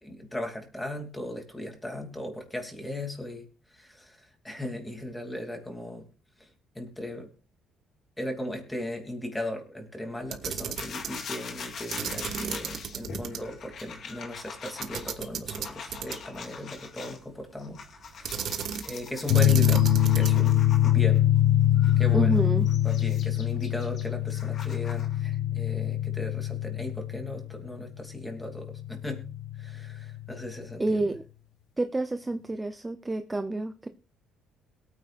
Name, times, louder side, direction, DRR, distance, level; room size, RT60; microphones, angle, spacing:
voice 1, 0.0-3.4 3.7-6.0 6.4-6.5 6.7-7.3 8.2-17.8 18.1-18.5 18.8-19.9 20.1-21.2 22.0-22.4 22.8-29.3 29.6-30.8, left 1 dB, 5° left, 3 dB, 2.7 m, -37 dB
Camera, 10.2-11.2 11.9-13.4 13.7-13.8 14.8-16.4 18.2-19.0 19.3-20.5, right 8 dB, 55° right, 1.5 m, -34 dB
sound 1, 10.8-17.2 17.6-21.2 21.8-25.2, left 5 dB, 50° left, 2.2 m, -42 dB
sound 2, 19.3-30.5, left 12 dB, 70° left, 1.2 m, -24 dB
voice 2, 22.1-22.7 30.8-31.2 31.8-33.9, right 2 dB, 10° right, 9 dB, 0.6 m, -28 dB
22.0 x 9.4 x 2.5 m, 0.34 s
cardioid pair, 150°, 0 cm